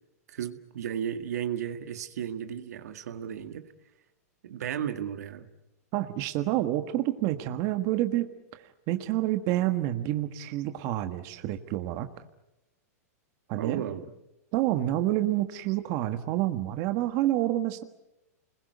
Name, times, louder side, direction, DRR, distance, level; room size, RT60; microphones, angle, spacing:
voice 1, 0.3-3.7 4.4-5.5 13.6-14.1, right 9 dB, 75° right, 8 dB, 1.9 m, -34 dB
voice 2, 5.9-12.1 13.5-13.8 14.5-17.8, right 14 dB, 45° right, 8 dB, 1.5 m, -28 dB
28.5 x 21.5 x 8.1 m, 0.89 s
hypercardioid pair, 130°, 9 cm